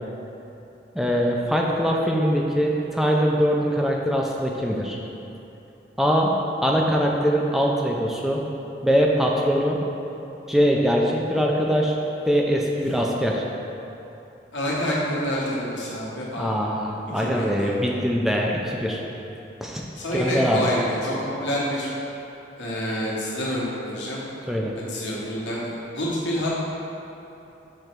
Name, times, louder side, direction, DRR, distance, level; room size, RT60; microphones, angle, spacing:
voice 1, 0.9-5.0 6.0-6.3 6.6-8.4 8.8-9.8 10.5-12.0 12.3-13.4 16.4-19.0 19.6-19.8 20.1-20.7 24.5-24.7, equal, ahead, -2 dB, 0.4 m, -22 dB
voice 2, 14.5-16.5 17.1-17.7 20.0-21.1 21.4-21.9 22.6-24.2 24.7-26.5, equal, 80° left, -6 dB, 1.3 m, -27 dB
6.7 x 3.1 x 4.5 m, 2.9 s
head